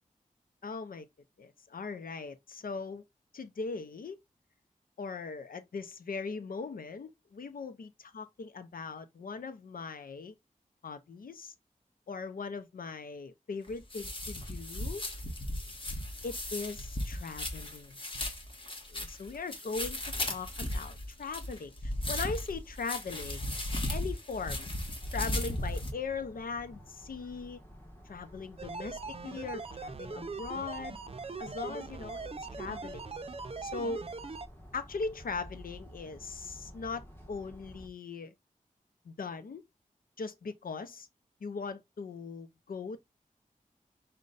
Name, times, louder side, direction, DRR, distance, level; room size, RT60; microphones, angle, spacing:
voice 1, 0.6-1.1 1.4-3.0 3.3-4.2 5.0-10.3 10.8-11.5 12.1-15.0 16.2-18.0 18.9-23.4 23.8-24.7 25.1-27.6 28.0-31.0 31.4-32.3 32.6-33.1 33.6-34.0 34.7-38.3 39.1-39.6 40.2-41.1 41.4-43.0, left 4 dB, 85° left, 0.5 m, -39 dB
sound 1, 13.7-25.9, left 1 dB, 35° left, 1.4 m, -36 dB
sound 2, 25.0-37.9, equal, 15° left, 1.2 m, -51 dB
sound 3, 28.6-34.5, right 4 dB, 45° right, 0.5 m, -41 dB
6.3 x 2.2 x 3.9 m
wide cardioid pair, 90°, 14 cm